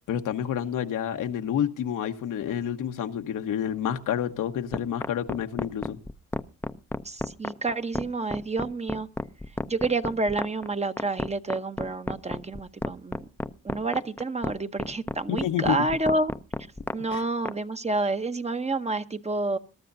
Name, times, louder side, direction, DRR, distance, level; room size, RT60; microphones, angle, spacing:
voice 1, 0.1-6.0 15.3-15.8 17.1-17.2, left 9 dB, 85° left, 1.1 m, -29 dB
sound 1, 4.7-17.6, left 2 dB, 5° left, 0.5 m, -31 dB
voice 2, 7.0-9.1 9.7-13.3 13.6-16.3 16.9-19.6, right 2 dB, 20° right, 0.8 m, -29 dB
21.5 x 12.5 x 2.6 m
cardioid pair, 80°, 31 cm